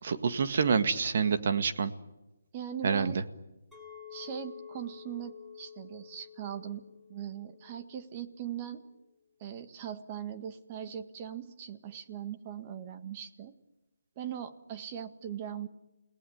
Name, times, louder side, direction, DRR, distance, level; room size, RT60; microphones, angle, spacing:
voice 1, 0.0-1.9 2.8-3.1, right 5 dB, 50° right, 9 dB, 1.9 m, -27 dB
voice 2, 2.5-3.3 4.1-6.8 7.1-8.8 9.4-13.5 14.2-15.7, right 9 dB, 25° right, 9 dB, 1.7 m, -40 dB
Chink clink, 3.7-8.9, left 8 dB, ahead, 5.6 m, -50 dB
29.5 x 19.0 x 9.5 m, 1.0 s
hypercardioid pair, 160°, 0 cm